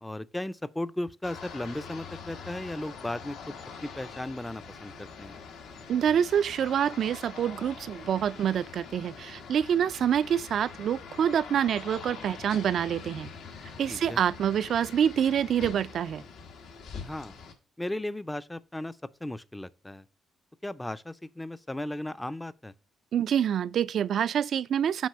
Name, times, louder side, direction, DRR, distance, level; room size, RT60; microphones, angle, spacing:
voice 1, 0.0-5.4 13.9-14.2 17.0-17.4 17.8-20.0 20.6-22.7, left 1 dB, 10° left, 0.4 m, -36 dB
sound 1, 1.2-17.5, left 5 dB, 80° left, 1.3 m, -44 dB
voice 2, 5.9-13.3 13.8-16.2 23.1-25.1, right 9 dB, 65° right, 0.3 m, -26 dB
6.2 x 4.6 x 5.6 m
cardioid pair, 90°, 0 cm